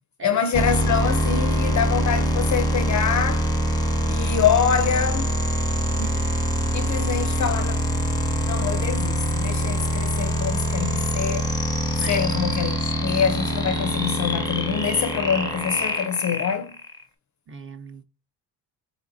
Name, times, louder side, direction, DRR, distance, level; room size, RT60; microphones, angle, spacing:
voice 1, 0.2-3.5 4.1-5.3 6.7-7.8 8.5-11.5 12.0-16.8, left 7 dB, 40° left, 0.4 m, -25 dB
sound 1, 0.5-17.0, equal, 10° left, 0.7 m, -24 dB
voice 2, 12.0-12.4 17.5-18.0, right 5 dB, 30° right, 0.7 m, -37 dB
3.9 x 3.1 x 2.5 m
cardioid pair, 80°, 45 cm